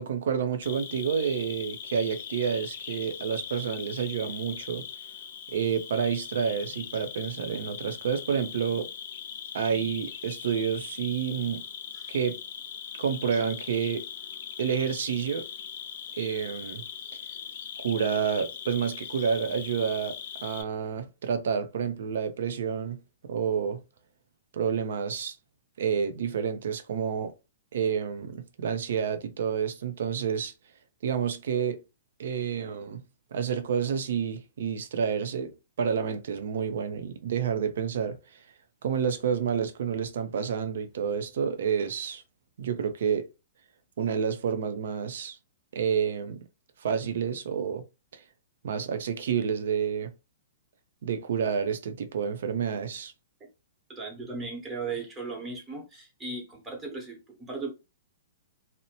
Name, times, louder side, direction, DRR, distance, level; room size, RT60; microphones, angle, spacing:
voice 1, 0.0-4.9 5.5-8.9 9.5-11.6 12.1-12.4 13.0-14.0 14.6-15.5 16.1-16.8 17.8-23.8 24.5-25.4 25.8-27.3 27.7-30.5 31.0-31.8 32.2-33.0 33.3-35.5 35.8-38.2 38.8-42.2 42.6-43.3 44.0-45.4 45.7-46.5 46.8-47.8 48.1-48.2 48.6-50.1 51.0-53.1, right 7 dB, 70° right, 0.5 m, -29 dB
Cricket, 0.6-20.6, left 8 dB, 60° left, 0.4 m, -40 dB
voice 2, 53.9-57.7, right 4 dB, 15° right, 1.0 m, -37 dB
2.7 x 2.1 x 2.8 m
hypercardioid pair, 140°, 0 cm